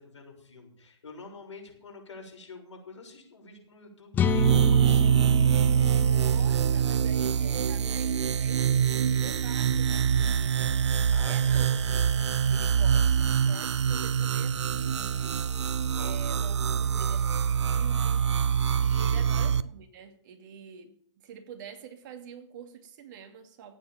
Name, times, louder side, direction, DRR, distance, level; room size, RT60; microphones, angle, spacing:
voice 1, 0.0-5.9 11.1-11.7 15.9-16.5 17.1-17.2 19.1-19.5, left 4 dB, 75° left, 1 dB, 6.6 m, -48 dB
sound 1, 4.1-7.9, left 9 dB, 10° left, 0.6 m, -32 dB
sound 2, 4.2-19.6, right 8 dB, 70° right, 0.7 m, -25 dB
voice 2, 6.1-11.0 11.2-15.5 16.0-18.3 18.8-23.8, right 7 dB, 40° right, 5 dB, 2.7 m, -47 dB
15.5 x 9.1 x 7.5 m, 0.63 s
hypercardioid pair, 140°, 15 cm